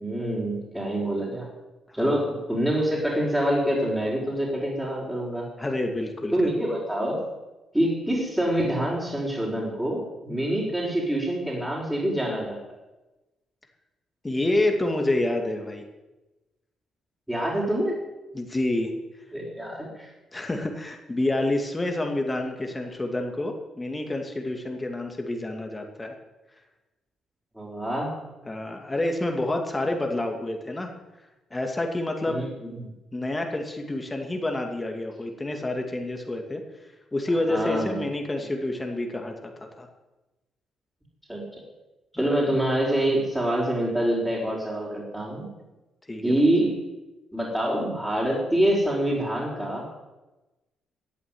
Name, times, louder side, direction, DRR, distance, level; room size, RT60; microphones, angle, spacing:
voice 1, 0.0-1.5 1.9-5.5 6.3-7.2 7.7-12.6 17.3-18.0 19.3-20.1 27.6-28.1 32.3-32.9 37.5-38.0 41.3-41.4 42.1-45.5 46.2-46.8 47.3-50.1, right 1 dB, 10° right, -6 dB, 5.2 m, -26 dB
voice 2, 5.6-6.3 14.2-15.8 18.3-18.9 20.3-26.1 28.5-30.9 31.5-32.4 33.1-36.6 37.1-39.9 42.2-42.3 46.1-46.3, left 2 dB, 20° left, 3 dB, 2.5 m, -28 dB
15.0 x 8.4 x 9.5 m, 1.1 s
cardioid pair, 90°, 0 cm